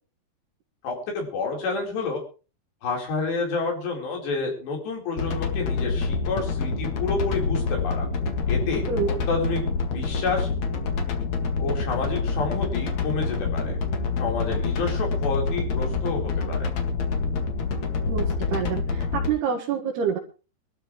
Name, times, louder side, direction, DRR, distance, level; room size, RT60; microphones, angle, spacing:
voice 1, 0.8-2.2 2.8-8.1 8.5-9.7 9.9-10.5 11.6-13.7 14.2-16.7, left 4 dB, 85° left, 0 dB, 6.3 m, -29 dB
sound 1, 5.2-19.3, left 4 dB, 50° left, 2.7 m, -27 dB
voice 2, 18.1-20.2, right 7 dB, 70° right, -1 dB, 3.8 m, -27 dB
24.0 x 12.5 x 3.2 m, 0.35 s
omnidirectional pair, 4.8 m